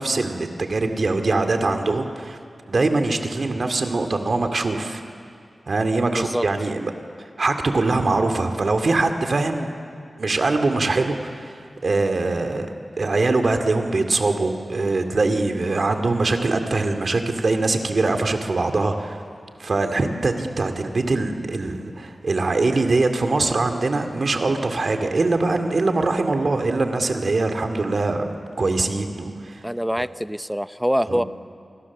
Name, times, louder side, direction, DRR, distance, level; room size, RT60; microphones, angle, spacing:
voice 1, 0.0-2.4 2.7-5.0 5.7-6.9 7.2-9.7 10.2-19.2 19.6-28.3 28.6-29.6 30.0-30.1 31.1-31.2, right 3 dB, 60° right, 6 dB, 2.5 m, -22 dB
voice 2, 6.1-6.5 29.6-31.2, equal, ahead, 13 dB, 0.7 m, -24 dB
29.5 x 24.5 x 7.4 m, 2.3 s
wide cardioid pair, 80°, 0 cm